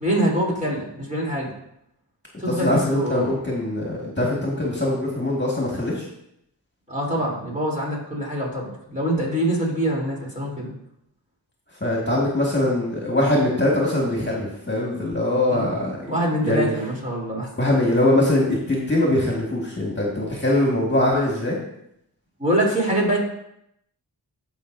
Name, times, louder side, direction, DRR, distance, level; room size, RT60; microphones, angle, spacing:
voice 1, 0.0-1.5 2.4-3.4 6.9-10.7 15.5-15.7 16.1-17.5 22.4-23.2, right 1 dB, 20° right, -4 dB, 3.3 m, -24 dB
voice 2, 2.5-6.0 11.8-16.0 16.4-16.7 17.6-21.6, left 1 dB, 25° left, -3 dB, 1.9 m, -22 dB
15.5 x 5.3 x 2.7 m, 0.76 s
wide cardioid pair, 45°, 40 cm